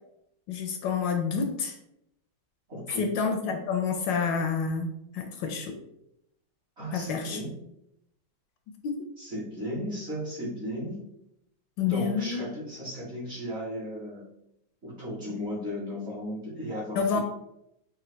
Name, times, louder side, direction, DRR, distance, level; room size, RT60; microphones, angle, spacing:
voice 1, 0.5-1.8 3.0-5.7 6.9-7.4 8.8-9.0 11.8-12.4 16.9-17.2, left 5 dB, 75° left, 4 dB, 1.2 m, -28 dB
voice 2, 2.7-3.1 6.8-7.5 9.2-11.0 11.8-14.3 14.8-17.2, equal, 40° right, -7 dB, 1.2 m, -35 dB
4.9 x 2.6 x 3.1 m, 0.80 s
omnidirectional pair, 2.2 m